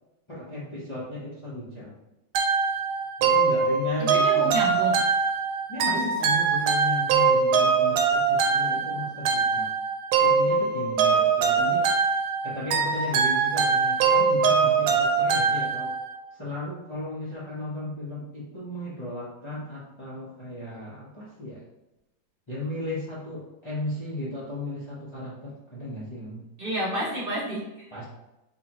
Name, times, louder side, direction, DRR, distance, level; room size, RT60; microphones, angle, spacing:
voice 1, 0.3-1.9 3.2-4.6 5.7-9.7 10.2-11.9 12.4-15.9 16.3-21.6 22.5-26.4 27.9-28.0, left 1 dB, 35° left, -8 dB, 0.4 m, -35 dB
sound 1, 2.3-16.2, right 5 dB, 85° right, 1.4 m, -23 dB
voice 2, 4.0-5.1 5.9-6.4 26.6-27.8, right 1 dB, 50° right, -7 dB, 0.7 m, -31 dB
4.8 x 3.0 x 3.0 m, 0.96 s
omnidirectional pair, 2.2 m